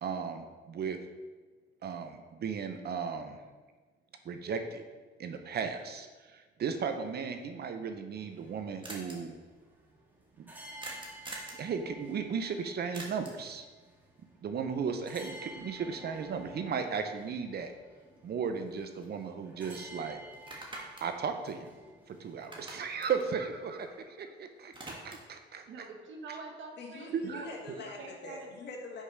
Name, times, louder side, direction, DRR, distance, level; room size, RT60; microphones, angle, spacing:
voice 1, 0.0-1.0 1.8-3.4 4.2-4.8 5.2-9.3 10.4-10.5 11.5-13.7 14.4-17.7 18.2-20.2 21.0-21.7 22.1-25.6 27.1-27.4, right 6 dB, 55° right, 7 dB, 0.7 m, -36 dB
sound 1, 8.1-24.0, right 1 dB, 10° right, 1.6 m, -53 dB
sound 2, 8.8-9.1 10.8-11.6 12.9-13.5 17.7-17.8 18.2-19.3 19.6-19.7 20.3-22.1 22.4-24.2 24.5-25.4, right 2 dB, 25° right, 1.5 m, -46 dB
voice 2, 25.7-27.5 28.0-28.5, right 4 dB, 75° right, 3 dB, 1.2 m, -46 dB
voice 3, 26.8-29.0, left 3 dB, 60° left, 0 dB, 1.5 m, -44 dB
5.5 x 4.8 x 5.0 m, 1.3 s
cardioid pair, 90°, 20 cm